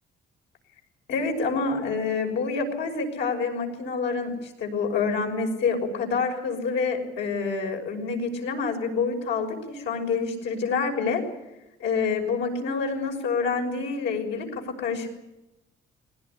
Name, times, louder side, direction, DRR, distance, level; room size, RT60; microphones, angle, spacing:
voice 1, 1.1-4.3 4.6-11.2 11.8-15.1, left 4 dB, 75° left, 2 dB, 6.2 m, -27 dB
20.5 x 19.0 x 10.0 m, 0.93 s
cardioid pair, 130°, 19 cm